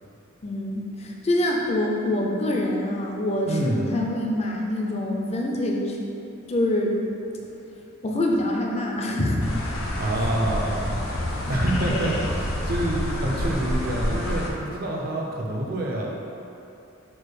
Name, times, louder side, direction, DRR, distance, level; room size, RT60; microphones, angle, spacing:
voice 1, 0.4-6.0 6.5-7.0 8.0-9.6 11.9-12.1, left 1 dB, 30° left, -1 dB, 0.4 m, -25 dB
voice 2, 3.5-3.9 10.0-11.0 11.5-16.2, right 1 dB, 45° right, -2 dB, 0.6 m, -27 dB
sound 1, 9.4-14.5, left 1 dB, 80° left, 0.6 m, -28 dB
4.6 x 2.3 x 4.7 m, 2.8 s
head